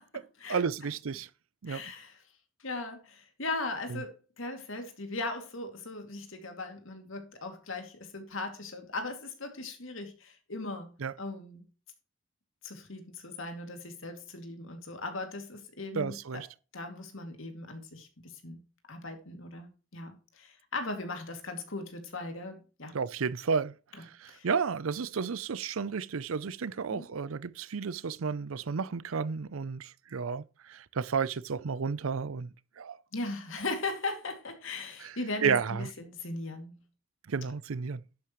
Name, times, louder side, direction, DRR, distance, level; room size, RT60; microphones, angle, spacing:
voice 1, 0.5-1.3 1.6-1.8 3.9-4.0 11.0-11.1 15.9-16.5 22.9-32.5 32.8-33.0 35.0-35.1 35.4-35.9 37.3-38.0, right 5 dB, 85° right, 0.6 m, -32 dB
voice 2, 1.7-2.2 2.6-11.7 12.6-16.4 16.7-18.6 18.9-22.9 24.3-24.5 26.9-27.0 33.1-36.7, left 2 dB, 75° left, 2.5 m, -38 dB
11.5 x 8.6 x 3.1 m
head